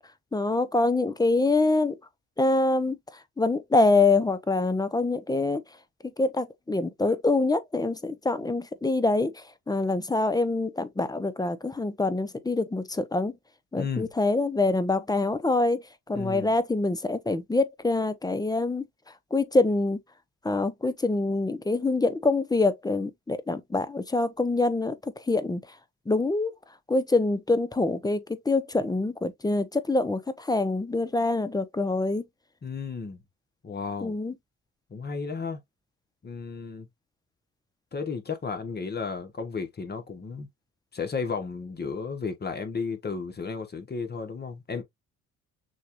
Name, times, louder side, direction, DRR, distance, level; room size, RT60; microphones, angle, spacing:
voice 1, 0.3-2.0 2.4-3.0 3.4-5.6 6.2-13.3 13.7-18.8 19.3-20.0 20.4-25.6 26.1-26.5 26.9-32.2 34.0-34.3, left 2 dB, 15° left, 0.7 m, -25 dB
voice 2, 13.7-14.1 16.1-16.5 32.6-33.2 33.6-34.2 34.9-35.6 36.2-36.9 37.9-40.5 40.9-44.8, left 5 dB, 35° left, 1.1 m, -33 dB
6.4 x 2.4 x 3.0 m
cardioid pair, 90°, 30 cm